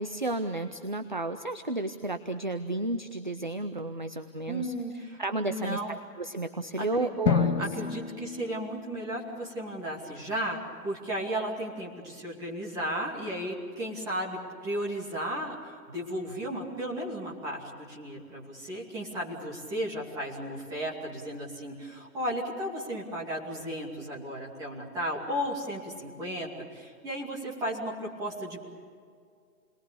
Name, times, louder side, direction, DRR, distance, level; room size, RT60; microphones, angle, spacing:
voice 1, 0.0-4.7 5.2-7.6, right 2 dB, 30° right, 9 dB, 0.5 m, -32 dB
voice 2, 4.5-5.2 5.5-6.0 6.8-7.2 7.6-28.6, equal, 5° right, -5 dB, 2.5 m, -34 dB
Drum, 7.3-9.8, left 6 dB, 85° left, 2.6 m, -30 dB
29.5 x 21.5 x 6.9 m, 2.1 s
hypercardioid pair, 175°, 48 cm